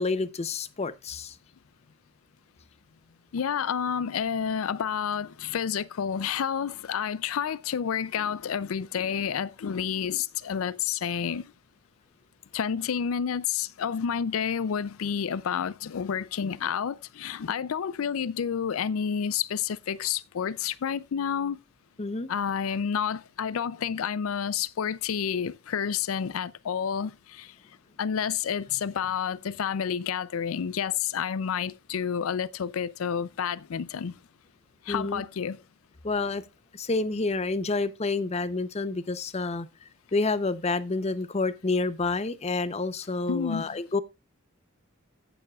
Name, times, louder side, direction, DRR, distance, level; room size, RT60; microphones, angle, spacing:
voice 1, 0.0-1.4 22.0-22.3 34.9-35.2 36.0-36.4 36.7-39.7 40.1-44.0, left 3 dB, 30° left, 0.6 m, -29 dB
voice 2, 3.3-11.5 12.5-21.6 22.3-27.5 28.0-34.2 34.8-35.6 43.3-43.8, left 7 dB, 90° left, 0.4 m, -29 dB
16.0 x 7.0 x 2.3 m
head